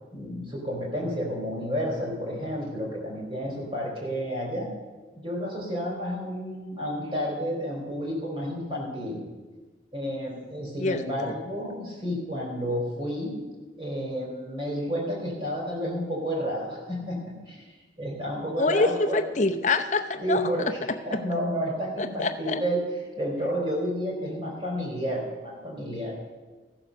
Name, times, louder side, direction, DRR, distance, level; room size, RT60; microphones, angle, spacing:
voice 1, 0.1-4.7 5.2-9.2 9.9-13.4 13.8-17.6 18.0-19.2 20.2-22.8 23.2-26.1, equal, 30° right, -3 dB, 3.8 m, -31 dB
voice 2, 10.8-11.3 18.6-20.5 22.0-22.6, left 3 dB, 40° left, 7 dB, 0.7 m, -26 dB
15.0 x 7.1 x 6.5 m, 1.3 s
head